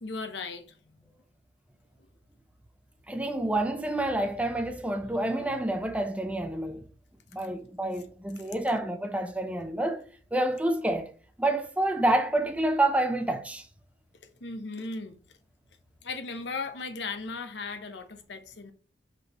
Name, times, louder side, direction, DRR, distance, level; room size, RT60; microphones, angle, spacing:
voice 1, 0.0-1.1 8.4-8.5 14.4-15.2 16.0-18.7, left 4 dB, 75° left, 0.9 m, -37 dB
voice 2, 3.1-6.8 7.3-10.0 10.3-11.1 11.4-13.7, right 1 dB, 10° right, 0.6 m, -28 dB
6.1 x 5.3 x 2.9 m
head